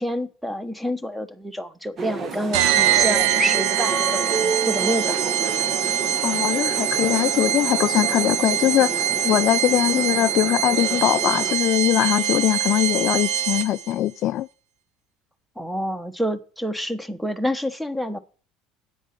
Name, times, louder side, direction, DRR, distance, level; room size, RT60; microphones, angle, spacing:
voice 1, 0.0-5.2 15.6-18.2, equal, 5° right, 1.4 m, -28 dB
sound 1, 2.0-11.5, right 4 dB, 40° right, 1.7 m, -31 dB
sound 2, 2.5-13.9, right 10 dB, 65° right, 0.9 m, -23 dB
voice 2, 6.2-14.5, left 14 dB, 55° left, 0.4 m, -21 dB
9.1 x 7.8 x 6.0 m
hypercardioid pair, 65°, 0 cm